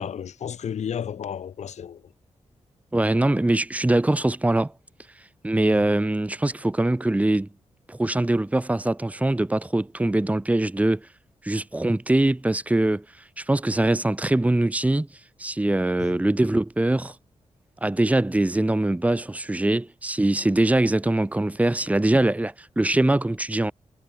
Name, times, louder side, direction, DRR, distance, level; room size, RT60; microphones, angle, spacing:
voice 1, 0.0-2.0 16.0-16.1, left 8 dB, 85° left, 7.0 m, -32 dB
voice 2, 2.9-4.7 5.2-7.5 7.9-11.1 11.4-17.2 17.8-23.7, right 1 dB, 10° right, 2.8 m, -23 dB
wide cardioid pair, 125°, 11 cm